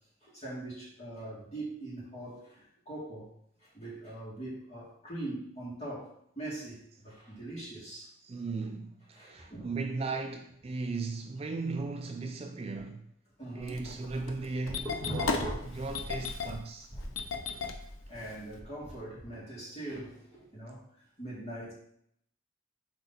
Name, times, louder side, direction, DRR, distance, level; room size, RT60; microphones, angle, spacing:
voice 1, 0.2-3.3 3.6-8.1 9.1-9.7 12.7-12.9 13.4-13.8 17.4-17.7 18.1-20.8 21.2-21.7, right 1 dB, 30° left, 2.4 m, -42 dB
voice 2, 8.2-13.1 13.5-16.9, right 3 dB, 30° right, 0.3 m, -37 dB
Engine starting, 13.6-18.6, left 4 dB, 85° left, 0.7 m, -36 dB
sound 1, 14.2-16.6 16.9-19.3, equal, 15° left, 1.5 m, -40 dB
5.9 x 3.8 x 4.2 m
head